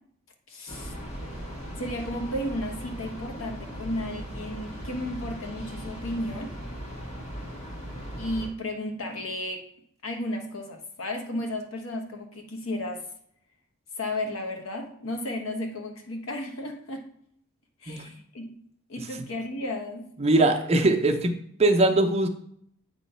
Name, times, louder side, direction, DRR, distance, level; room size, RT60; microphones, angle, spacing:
voice 1, 0.5-0.9 1.8-6.5 8.2-9.6 10.0-13.0 14.0-17.1 17.8-18.5 18.9-20.1, left 1 dB, 85° left, 4 dB, 1.2 m, -33 dB
Train, 0.7-8.5, equal, 35° left, 1.4 m, -38 dB
voice 2, 17.9-18.2 19.0-19.1 20.2-21.3 21.6-22.3, right 2 dB, 30° right, 3 dB, 0.7 m, -21 dB
8.3 x 3.1 x 5.5 m, 0.69 s
head